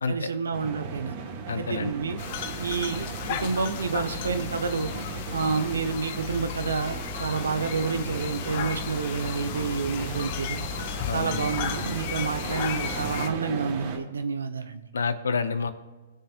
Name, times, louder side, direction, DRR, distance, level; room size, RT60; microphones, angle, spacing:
voice 1, 0.1-1.1 1.6-2.2 2.6-4.9 5.3-10.6 11.1-14.8, right 5 dB, 85° right, 8 dB, 1.0 m, -29 dB
sound 1, 0.5-14.0, right 5 dB, 50° right, 1.9 m, -37 dB
voice 2, 1.5-1.9 11.1-11.5 14.9-15.7, left 5 dB, 85° left, 11 dB, 0.9 m, -28 dB
sound 2, 2.2-13.3, left 10 dB, 50° left, 0.8 m, -35 dB
19.5 x 6.7 x 2.6 m, 1.3 s
hypercardioid pair, 125°, 0 cm